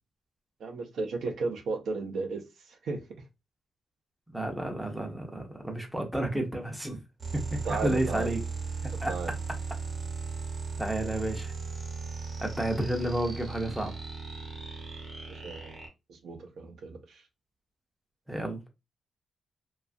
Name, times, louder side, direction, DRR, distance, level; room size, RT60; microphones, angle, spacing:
voice 1, 0.6-2.4 2.7-3.0 7.6-8.3 8.9-9.3 15.3-15.8 16.1-17.2, right 4 dB, 70° right, 0.5 m, -35 dB
voice 2, 4.3-7.0 7.3-8.4 9.0-9.1 10.8-11.5 12.4-14.0 18.3-18.6, right 1 dB, 5° right, 0.5 m, -31 dB
sound 1, 7.2-15.9, right 4 dB, 30° right, 0.8 m, -37 dB
2.8 x 2.3 x 2.4 m
wide cardioid pair, 175°, 0 cm